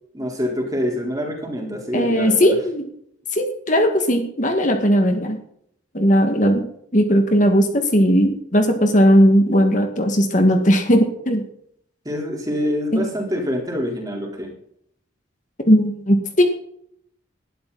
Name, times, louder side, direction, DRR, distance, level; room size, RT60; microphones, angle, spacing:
voice 1, 0.1-2.6 12.0-14.5, equal, 20° right, 0 dB, 4.2 m, -25 dB
voice 2, 1.9-2.8 3.3-5.4 5.9-6.6 6.9-11.4 12.9-13.0 15.7-16.4, equal, 40° left, 5 dB, 2.1 m, -17 dB
20.0 x 12.5 x 4.3 m, 0.68 s
head